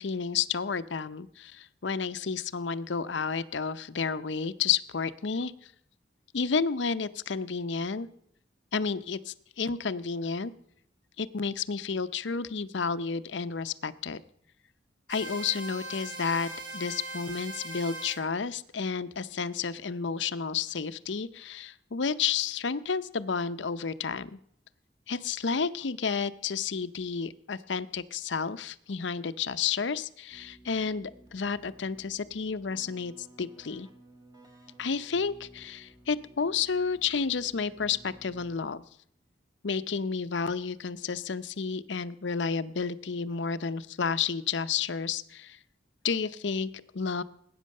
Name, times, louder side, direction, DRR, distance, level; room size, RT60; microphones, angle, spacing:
voice 1, 0.0-5.7 6.3-8.1 8.7-10.5 11.2-14.2 15.1-24.4 25.1-33.9 34.8-38.8 39.6-45.6 46.0-47.2, left 5 dB, 75° left, 14 dB, 0.7 m, -31 dB
sound 1, 15.1-18.2, right 1 dB, 85° right, 3.6 m, -40 dB
Keyboard (musical), 30.3-39.0, right 1 dB, 20° right, 1.8 m, -56 dB
19.0 x 9.5 x 6.5 m, 0.70 s
head